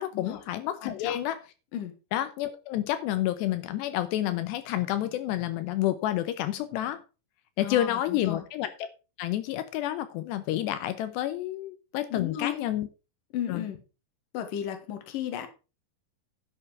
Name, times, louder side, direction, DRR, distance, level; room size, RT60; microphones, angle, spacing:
voice 1, 0.0-1.4 2.1-7.0 7.6-8.7 9.2-12.9 13.5-13.7, left 13 dB, 85° left, 11 dB, 3.0 m, -29 dB
voice 2, 0.8-1.2 1.7-1.9 7.6-8.4 12.1-12.6 13.3-13.8 14.3-15.5, left 10 dB, 60° left, 7 dB, 2.9 m, -34 dB
11.0 x 6.9 x 4.9 m, 0.32 s
omnidirectional pair, 4.9 m